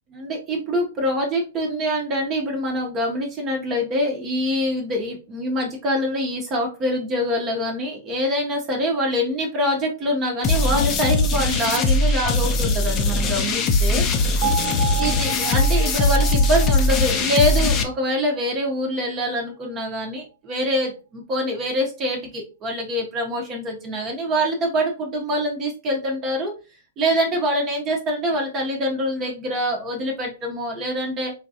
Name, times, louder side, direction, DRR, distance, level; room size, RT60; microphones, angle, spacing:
voice 1, 0.1-14.0 15.0-26.5 27.0-31.3, equal, 30° right, 1 dB, 0.7 m, -25 dB
sound 1, 10.4-17.8, left 2 dB, 30° left, 0.5 m, -20 dB
Bell, 14.4-18.5, right 14 dB, 55° right, 0.4 m, -31 dB
3.2 x 2.3 x 2.6 m, 0.32 s
hypercardioid pair, 120°, 0 cm